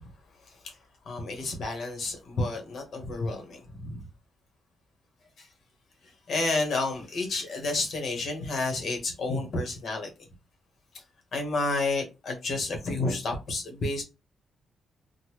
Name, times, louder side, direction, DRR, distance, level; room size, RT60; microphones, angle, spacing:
voice 1, 1.1-4.0 6.3-10.1 11.3-14.0, left 2 dB, 45° left, 1.2 m, -30 dB
3.8 x 2.1 x 3.1 m
cardioid pair, 160°, 0 cm